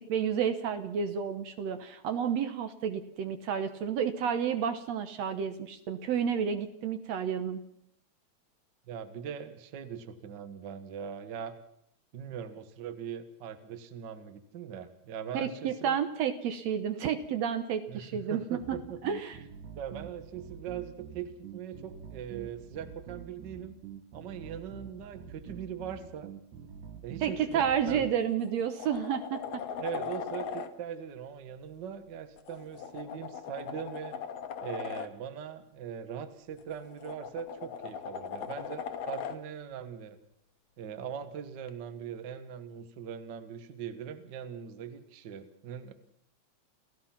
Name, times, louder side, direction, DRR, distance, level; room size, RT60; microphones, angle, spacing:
voice 1, 0.1-7.6 15.3-18.8 19.0-19.4 27.2-29.6, right 8 dB, 70° right, 9 dB, 2.1 m, -31 dB
voice 2, 8.9-11.6 12.1-16.0 17.9-19.0 19.8-23.7 24.1-26.3 27.0-28.2 29.8-34.1 34.6-40.2 40.8-45.9, right 8 dB, 45° right, 10 dB, 1.6 m, -41 dB
sound 1, 18.6-28.1, right 8 dB, 85° right, 3.1 m, -46 dB
sound 2, 27.8-28.0 28.4-30.7 32.4-35.1 36.6-39.4 41.7-41.8, left 7 dB, 75° left, 2.5 m, -39 dB
29.0 x 15.5 x 5.9 m, 0.72 s
omnidirectional pair, 3.3 m